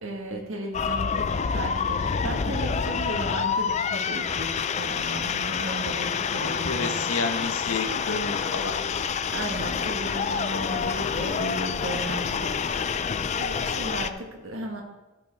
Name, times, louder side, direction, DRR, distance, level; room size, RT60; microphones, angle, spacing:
voice 1, 0.0-6.9 9.3-12.5 13.4-14.8, right 1 dB, 70° right, 1 dB, 1.6 m, -35 dB
sound 1, 0.7-14.1, left 6 dB, 30° left, 0.3 m, -28 dB
voice 2, 6.4-8.8, left 3 dB, 80° left, 6 dB, 1.1 m, -30 dB
11.5 x 8.4 x 3.5 m, 1.1 s
head